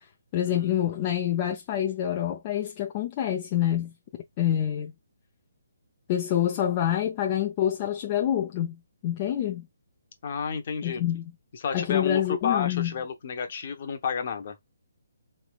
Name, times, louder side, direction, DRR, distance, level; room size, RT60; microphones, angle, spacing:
voice 1, 0.3-3.9 4.4-4.9 6.1-9.7 10.8-11.3 11.7-12.9, left 11 dB, 20° left, 0.4 m, -27 dB
voice 2, 10.2-11.0 11.5-14.6, left 6 dB, 40° left, 0.9 m, -31 dB
4.1 x 3.2 x 2.3 m
hypercardioid pair, 175°, 0 cm